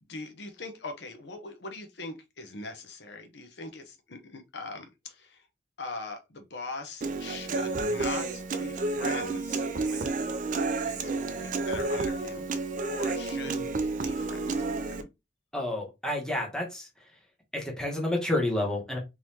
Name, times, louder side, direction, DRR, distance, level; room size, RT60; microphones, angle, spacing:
voice 1, 0.0-5.5 5.8-10.2 10.8-11.1 11.4-12.5 12.9-15.1, left 3 dB, 60° left, 6 dB, 0.7 m, -41 dB
Human voice / Acoustic guitar, 7.0-15.0, right 3 dB, 40° right, 0.4 m, -30 dB
voice 2, 15.5-16.9 17.5-19.0, left 1 dB, 5° left, -1 dB, 1.1 m, -30 dB
3.9 x 3.0 x 2.7 m, 0.23 s
head